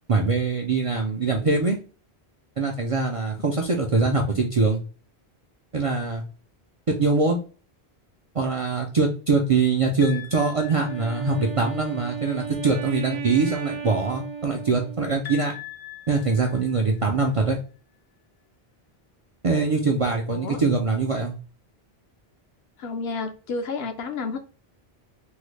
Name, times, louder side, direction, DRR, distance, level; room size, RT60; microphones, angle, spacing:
voice 1, 0.1-1.8 2.6-4.8 5.7-6.2 6.9-7.4 8.3-15.5 16.1-17.6 19.4-21.3, right 4 dB, 50° right, 0.4 m, -23 dB
sound 1, 10.0-11.7 15.3-17.3, left 13 dB, 50° left, 0.4 m, -42 dB
Wind instrument woodwind instrument, 10.8-15.5, right 6 dB, 90° right, 0.8 m, -35 dB
voice 2, 20.3-20.6 22.8-24.4, left 4 dB, 75° left, 0.8 m, -30 dB
3.6 x 2.0 x 3.1 m
omnidirectional pair, 1.1 m